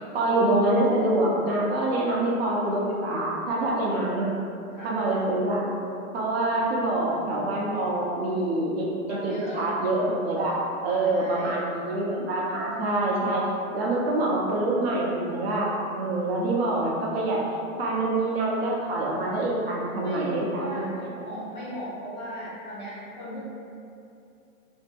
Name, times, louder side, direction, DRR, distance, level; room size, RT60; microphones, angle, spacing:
voice 1, 0.1-4.3 4.8-5.6 6.1-10.6 10.8-13.5 13.7-15.7 16.0-17.4 17.8-20.9, right 2 dB, 45° right, -4 dB, 0.5 m, -25 dB
voice 2, 9.1-9.6 11.0-11.6 20.0-23.4, equal, 35° left, -7 dB, 0.4 m, -37 dB
2.6 x 2.6 x 2.3 m, 2.6 s
hypercardioid pair, 145°, 43 cm